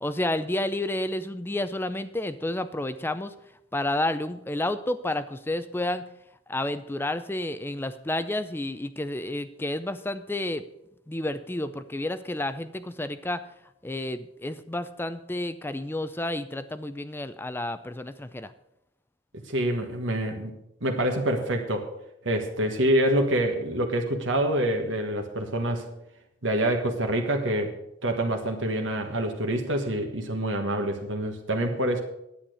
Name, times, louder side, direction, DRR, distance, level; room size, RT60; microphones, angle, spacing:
voice 1, 0.0-3.3 3.7-6.1 6.5-10.7 11.1-13.4 13.8-18.5, left 1 dB, 10° left, 12 dB, 0.4 m, -30 dB
voice 2, 19.5-20.5 20.8-21.9 22.2-25.9 26.4-27.7 28.0-32.0, right 1 dB, 70° right, 3 dB, 1.5 m, -26 dB
10.0 x 8.8 x 6.4 m, 0.83 s
head